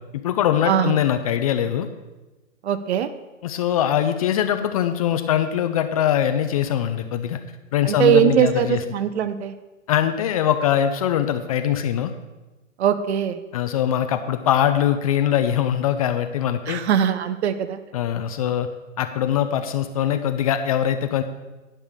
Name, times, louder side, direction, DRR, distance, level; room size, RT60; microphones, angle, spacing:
voice 1, 0.1-1.9 3.4-7.4 7.7-8.8 9.9-12.1 13.5-16.8 17.9-18.7 19.0-21.2, left 10 dB, 30° left, 9 dB, 0.4 m, -22 dB
voice 2, 0.7-1.0 2.6-3.1 7.9-9.5 12.8-13.4 16.7-17.8, right 9 dB, 55° right, 11 dB, 0.9 m, -21 dB
10.5 x 5.4 x 6.4 m, 1.1 s
hypercardioid pair, 130°, 39 cm